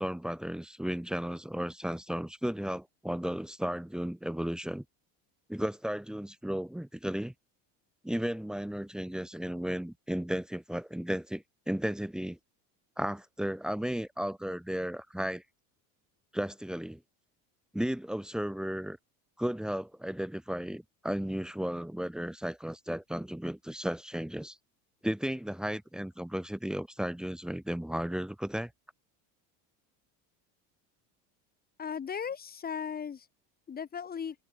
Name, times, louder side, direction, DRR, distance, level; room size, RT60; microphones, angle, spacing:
voice 1, 0.0-4.8 5.5-7.3 8.0-12.4 13.0-15.4 16.3-17.0 17.7-19.0 19.4-24.6 25.0-28.7, equal, ahead, 4.2 m, -34 dB
voice 2, 31.8-33.2 33.7-34.3, left 7 dB, 25° left, 4.5 m, -36 dB
cardioid pair, 160°, 38 cm